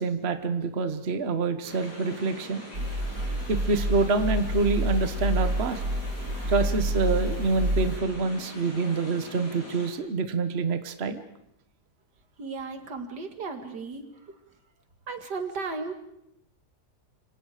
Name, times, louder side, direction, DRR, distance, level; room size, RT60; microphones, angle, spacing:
voice 1, 0.0-2.6 3.5-5.8 6.5-11.2, right 4 dB, 40° right, 9 dB, 1.5 m, -26 dB
sound 1, 1.6-9.9, left 1 dB, 80° left, 7.8 m, -43 dB
sound 2, 2.7-8.0, right 1 dB, 60° right, 3.4 m, -28 dB
voice 2, 12.4-14.0 15.1-15.9, right 4 dB, 85° right, 6 dB, 2.8 m, -35 dB
28.0 x 25.0 x 5.1 m, 0.78 s
omnidirectional pair, 1.8 m